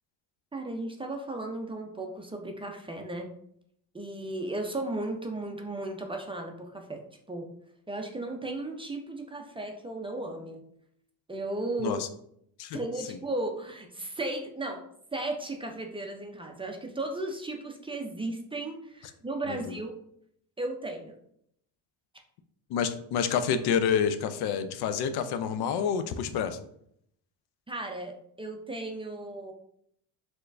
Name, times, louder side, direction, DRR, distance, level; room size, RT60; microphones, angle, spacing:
voice 1, 0.5-3.3 3.9-7.0 7.3-7.5 7.9-10.6 11.3-12.0 12.7-14.8 15.1-19.9 20.6-21.2 27.7-29.5, right 2 dB, 10° right, 2 dB, 0.5 m, -35 dB
voice 2, 19.5-19.8 22.7-26.6, left 7 dB, 60° left, 10 dB, 0.5 m, -28 dB
4.4 x 2.2 x 2.5 m, 0.70 s
supercardioid pair, 75°, 46 cm